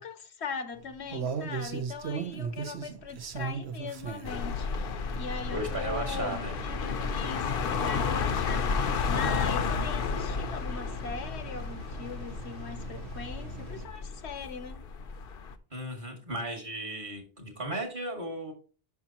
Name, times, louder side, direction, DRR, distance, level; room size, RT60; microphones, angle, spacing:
voice 1, 0.0-14.8, left 5 dB, 80° left, 1.1 m, -40 dB
sound 1, 0.7-13.9, right 5 dB, 75° right, 1.1 m, -40 dB
sound 2, 4.2-15.5, left 5 dB, 60° left, 0.8 m, -32 dB
voice 2, 5.5-6.6 15.7-18.5, right 1 dB, 50° right, 2.3 m, -35 dB
9.6 x 5.9 x 2.9 m
omnidirectional pair, 1.1 m